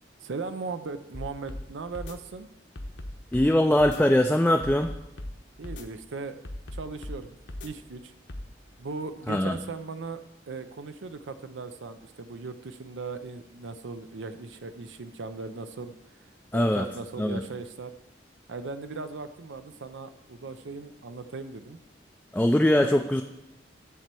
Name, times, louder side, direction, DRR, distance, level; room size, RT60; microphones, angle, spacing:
voice 1, 0.2-2.5 5.6-6.3 6.7-7.3 7.6-8.1 8.8-10.2 10.5-17.9 18.5-21.8 22.8-23.0, right 4 dB, 90° right, 10 dB, 0.6 m, -38 dB
sound 1, 1.1-1.6 1.9-2.2 2.8-3.5 3.8-4.0 4.6-5.3 5.6-5.9 6.4-7.2 7.5-7.7 8.3-8.5, left 1 dB, 75° left, 1.1 m, -37 dB
voice 2, 3.3-4.9 9.3-9.6 16.5-16.9 17.2-17.4 22.3-23.2, left 1 dB, 5° left, 4 dB, 0.3 m, -22 dB
12.0 x 4.3 x 7.5 m, 0.93 s
head